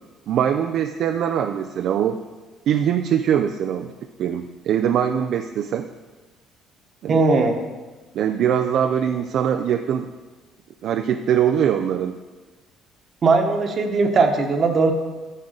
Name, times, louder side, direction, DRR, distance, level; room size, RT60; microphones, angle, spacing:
voice 1, 0.3-2.2 2.7-3.9 4.2-5.9 7.0-7.2 8.1-10.1 10.8-12.2, right 9 dB, 65° right, 7 dB, 0.4 m, -22 dB
voice 2, 7.1-7.6 13.2-14.9, right 3 dB, 45° right, 5 dB, 1.1 m, -18 dB
9.5 x 3.7 x 6.5 m, 1.3 s
supercardioid pair, 85°, 0 cm